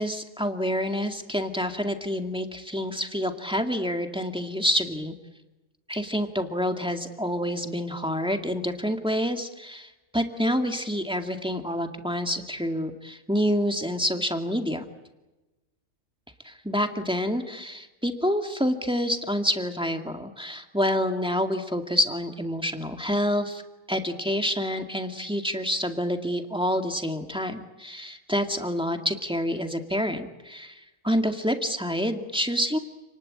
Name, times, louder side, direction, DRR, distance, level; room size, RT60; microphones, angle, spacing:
voice 1, 0.0-5.1 5.9-14.8 16.4-23.6 23.9-32.8, equal, 5° right, 5 dB, 2.1 m, -27 dB
29.5 x 20.0 x 8.8 m, 1.1 s
omnidirectional pair, 1.4 m